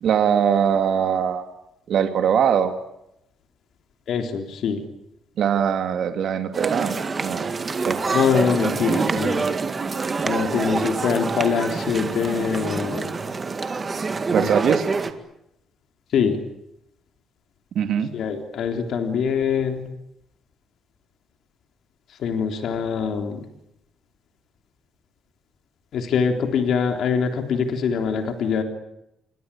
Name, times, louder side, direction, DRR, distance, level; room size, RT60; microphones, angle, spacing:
voice 1, 0.0-1.4 1.9-2.7 5.4-7.5 7.8-8.0 14.3-14.9 17.8-18.1, right 8 dB, 55° right, 7 dB, 2.4 m, -21 dB
voice 2, 4.1-4.8 8.1-9.5 10.3-13.1 14.4-14.5 16.1-16.4 18.1-19.8 22.2-23.4 25.9-28.6, left 6 dB, 60° left, 6 dB, 3.6 m, -23 dB
sound 1, 6.5-15.1, right 4 dB, 25° right, 1.9 m, -26 dB
28.5 x 23.0 x 8.7 m, 0.82 s
cardioid pair, 160°, 0 cm